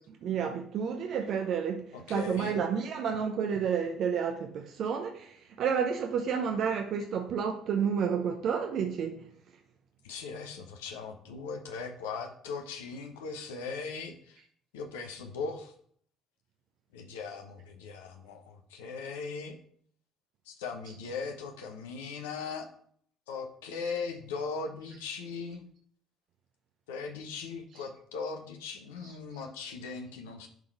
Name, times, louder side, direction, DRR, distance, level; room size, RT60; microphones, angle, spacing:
voice 1, 0.1-9.2 20.9-21.0 29.0-29.2, right 7 dB, 55° right, 4 dB, 0.7 m, -30 dB
voice 2, 1.9-2.6 10.0-14.4 14.7-15.7 16.9-19.5 20.5-22.7 23.3-25.6 26.9-30.5, left 5 dB, 75° left, 4 dB, 0.9 m, -39 dB
10.5 x 3.8 x 4.6 m, 0.62 s
figure-of-eight pair, 50°, 0 cm